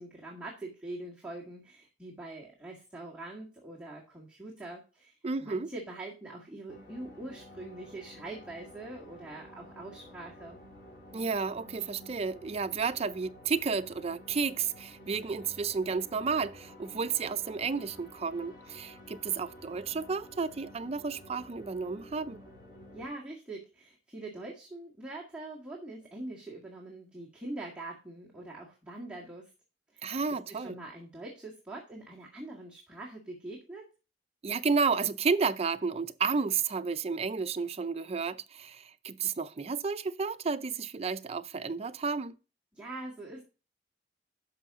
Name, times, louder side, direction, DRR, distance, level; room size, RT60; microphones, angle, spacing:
voice 1, 0.0-10.6 22.9-29.5 29.9-33.8 42.7-43.4, right 2 dB, 5° right, 1.9 m, -43 dB
voice 2, 5.2-5.7 11.1-22.4 30.0-30.8 34.4-42.4, right 5 dB, 35° right, 0.5 m, -32 dB
sound 1, 6.7-23.0, left 1 dB, 65° left, 4.4 m, -52 dB
10.0 x 6.2 x 3.6 m
head